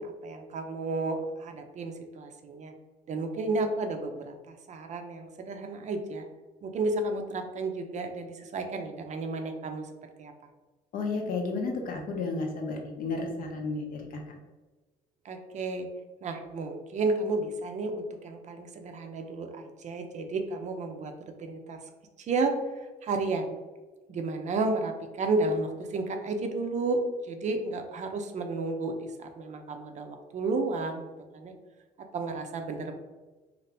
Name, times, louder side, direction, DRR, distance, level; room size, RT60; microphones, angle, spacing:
voice 1, 0.0-2.7 3.1-6.3 6.6-9.9 10.2-10.3 15.2-15.9 16.2-21.1 21.4-21.8 22.2-22.5 23.0-23.5 24.1-31.5 32.1-33.0, right 3 dB, 45° right, 5 dB, 0.5 m, -32 dB
voice 2, 10.9-14.2, left 3 dB, 55° left, 1 dB, 0.7 m, -32 dB
2.7 x 2.4 x 3.2 m, 1.2 s
cardioid pair, 110°, 17 cm